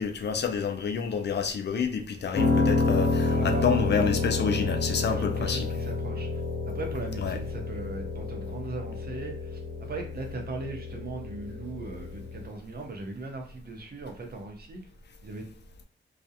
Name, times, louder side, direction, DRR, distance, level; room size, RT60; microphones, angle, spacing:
voice 1, 0.0-5.7 7.2-7.4, left 6 dB, 55° left, 0.4 m, -28 dB
Piano, 2.3-12.5, left 3 dB, 85° left, 0.8 m, -29 dB
voice 2, 3.3-4.0 5.1-6.4 6.7-9.6 9.9-14.8 15.2-15.4, right 3 dB, 50° right, 0.7 m, -38 dB
2.4 x 2.0 x 2.7 m
wide cardioid pair, 105°, 21 cm